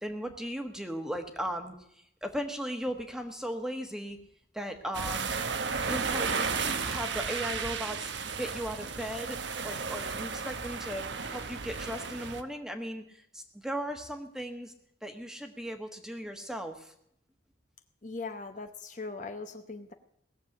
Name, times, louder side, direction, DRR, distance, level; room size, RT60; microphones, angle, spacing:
voice 1, 0.0-4.2 4.5-5.5 5.9-8.1 8.4-11.1 11.3-14.7 15.0-16.9, equal, 5° right, 5 dB, 1.3 m, -37 dB
sound 1, 4.9-12.4, right 5 dB, 70° right, 1.0 m, -34 dB
voice 2, 18.0-19.9, left 3 dB, 40° left, 7 dB, 0.8 m, -40 dB
18.5 x 7.4 x 8.5 m, 0.75 s
head